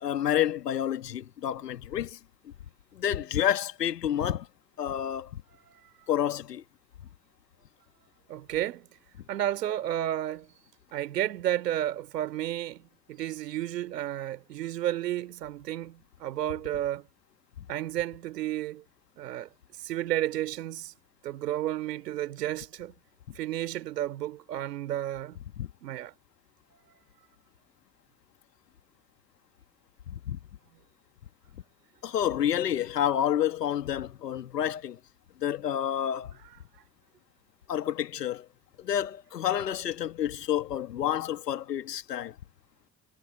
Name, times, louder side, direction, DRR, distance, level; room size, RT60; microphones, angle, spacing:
voice 1, 0.0-2.2 2.4-2.5 2.9-4.5 4.8-5.4 6.1-6.6 25.6-25.7 30.1-30.4 32.0-35.0 35.4-36.4 37.7-38.5 38.8-42.4, left 10 dB, 80° left, 2.1 m, -29 dB
voice 2, 8.3-8.9 9.3-10.5 10.9-17.1 17.7-18.8 19.2-19.5 19.8-20.9 21.2-22.9 23.3-25.4 25.8-26.1, right 13 dB, 80° right, 3.4 m, -32 dB
figure-of-eight pair, 45°, 48 cm